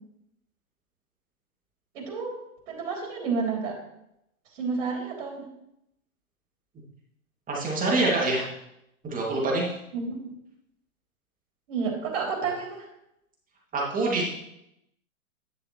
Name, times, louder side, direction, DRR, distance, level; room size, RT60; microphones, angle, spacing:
voice 1, 1.9-2.4 2.7-3.7 4.5-5.5 9.9-10.3 11.7-12.9, right 5 dB, 60° right, 0 dB, 3.1 m, -30 dB
voice 2, 7.5-8.4 9.0-9.7 13.7-14.3, right 2 dB, 20° right, -3 dB, 2.3 m, -25 dB
10.0 x 7.2 x 3.1 m, 0.82 s
hypercardioid pair, 115°, 43 cm